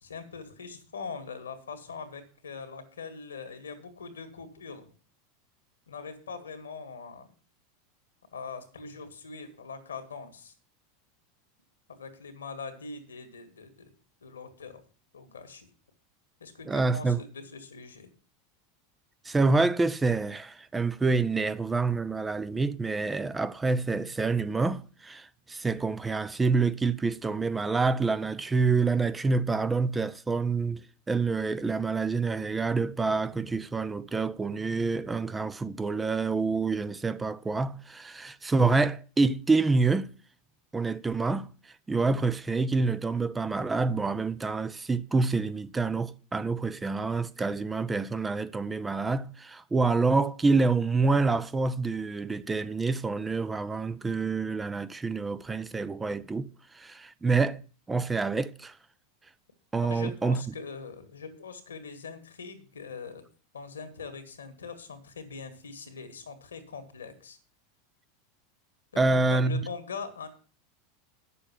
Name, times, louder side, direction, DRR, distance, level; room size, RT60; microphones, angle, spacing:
voice 1, 0.0-4.9 5.9-7.3 8.3-10.5 11.9-13.9 14.2-14.8 15.1-15.7 16.4-18.1 59.9-63.2 63.5-67.4 68.9-70.3, left 5 dB, 90° left, 1.9 m, -42 dB
voice 2, 16.7-17.2 19.2-30.8 31.1-40.1 40.7-41.5 41.9-56.5 56.7-57.6 57.9-58.8 59.7-60.4 69.0-69.6, right 3 dB, 15° right, 0.6 m, -27 dB
8.9 x 6.9 x 7.4 m
hypercardioid pair, 90°, 0 cm